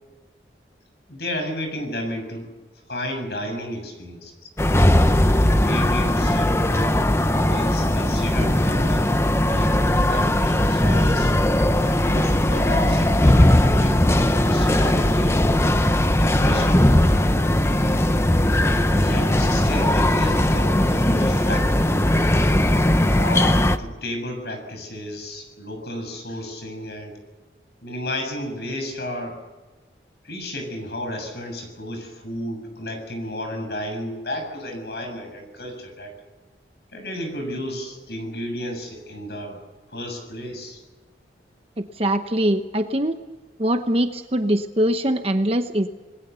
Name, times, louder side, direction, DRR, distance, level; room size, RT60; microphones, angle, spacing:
voice 1, 1.1-2.5 2.9-4.3 5.5-7.0 7.4-9.1 9.4-9.7 10.0-11.6 12.1-15.5 16.2-17.1 19.0-21.9 23.1-27.2 27.8-29.4 30.2-36.1 36.9-39.6 39.9-40.8, left 1 dB, 65° left, 5 dB, 7.2 m, -32 dB
sound 1, 4.6-23.8, left 1 dB, 15° left, 0.8 m, -19 dB
voice 2, 41.8-43.2 43.6-45.9, right 1 dB, 35° right, 7 dB, 0.9 m, -22 dB
28.0 x 20.5 x 7.0 m, 1.3 s
head